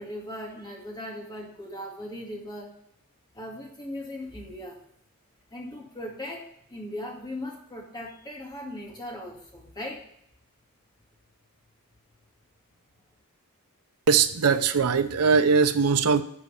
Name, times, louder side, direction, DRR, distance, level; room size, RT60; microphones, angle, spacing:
voice 1, 0.0-2.7 3.3-4.8 5.5-10.0, left 1 dB, 20° left, -1 dB, 2.2 m, -38 dB
voice 2, 14.1-16.2, right 5 dB, 85° right, 8 dB, 0.6 m, -21 dB
10.5 x 4.6 x 7.0 m, 0.71 s
head